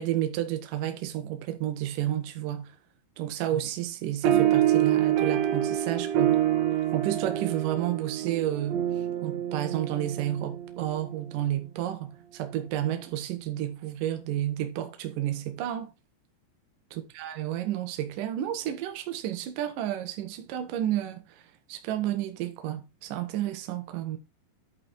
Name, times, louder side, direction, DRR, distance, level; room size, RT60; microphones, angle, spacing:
voice 1, 0.0-2.7 3.2-6.4 6.9-8.9 9.2-15.9 16.9-21.4 21.7-24.2, right 12 dB, 65° right, 2.5 m, -31 dB
sound 1, 4.2-11.1, right 11 dB, 85° right, 4.0 m, -26 dB
11.0 x 5.3 x 4.4 m
omnidirectional pair, 5.1 m